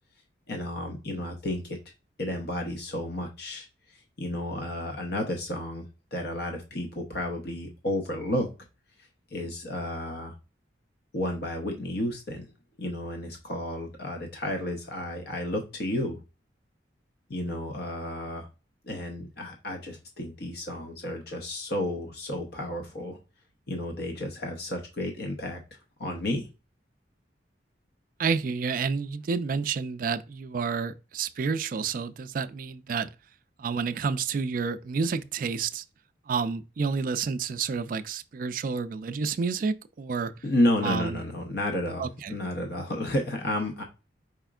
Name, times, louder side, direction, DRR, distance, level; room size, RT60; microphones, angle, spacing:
voice 1, 0.5-1.8 2.2-8.5 9.3-10.3 11.1-12.5 12.8-16.2 17.3-18.5 18.8-23.2 23.7-25.6 26.0-26.5 40.4-43.8, left 1 dB, 60° left, 0.8 m, -31 dB
voice 2, 28.2-33.1 33.6-35.8 36.3-40.3 40.8-41.2 42.0-42.4, right 5 dB, 50° right, 0.3 m, -29 dB
5.0 x 4.3 x 2.3 m
head